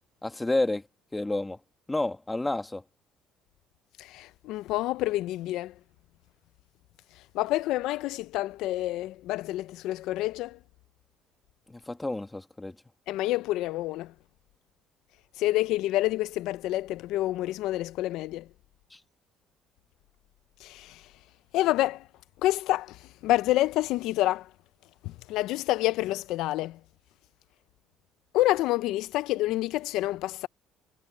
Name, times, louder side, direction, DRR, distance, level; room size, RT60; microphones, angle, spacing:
voice 1, 0.2-0.8 1.1-1.6 1.9-2.8 11.7-12.8 18.9-19.0, left 2 dB, 10° left, 1.8 m, -30 dB
voice 2, 4.0-5.7 7.2-10.6 13.1-14.1 15.4-18.5 20.6-21.1 21.5-22.1 22.4-24.5 25.0-26.8 28.3-30.5, left 16 dB, 75° left, 0.4 m, -28 dB
cardioid pair, 150°, 0 cm